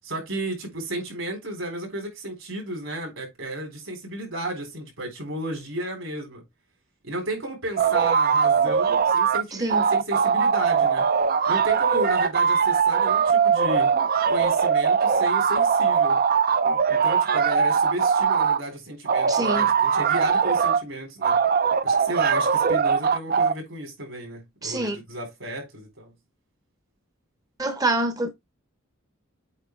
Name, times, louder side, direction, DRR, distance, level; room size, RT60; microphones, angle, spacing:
voice 1, 0.0-6.4 7.0-11.1 11.5-13.9 14.3-16.2 16.9-21.4 21.8-26.1, right 1 dB, 70° right, 3.9 m, -33 dB
sound 1, 7.8-9.4 9.7-18.6 19.1-20.8 21.2-23.5, right 6 dB, 45° right, 0.5 m, -21 dB
voice 2, 9.5-9.8 19.3-19.7 24.6-25.0 27.6-28.3, right 2 dB, 20° right, 0.8 m, -26 dB
8.3 x 2.9 x 4.5 m
head